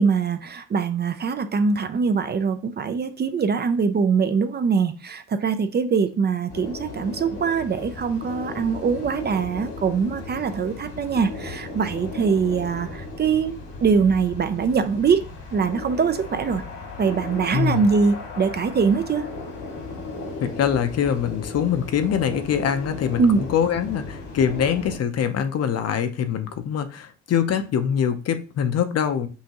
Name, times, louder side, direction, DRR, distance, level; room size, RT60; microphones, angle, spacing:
voice 1, 0.0-13.5 13.8-15.2 15.5-16.6 17.0-19.3 23.2-23.4, right 5 dB, 35° right, 0.4 m, -22 dB
sound 1, 6.5-25.0, left 3 dB, 85° left, 1.9 m, -36 dB
voice 2, 17.5-17.9 20.4-29.3, left 8 dB, 55° left, 0.6 m, -24 dB
5.5 x 2.6 x 2.9 m
cardioid pair, 90°, 30 cm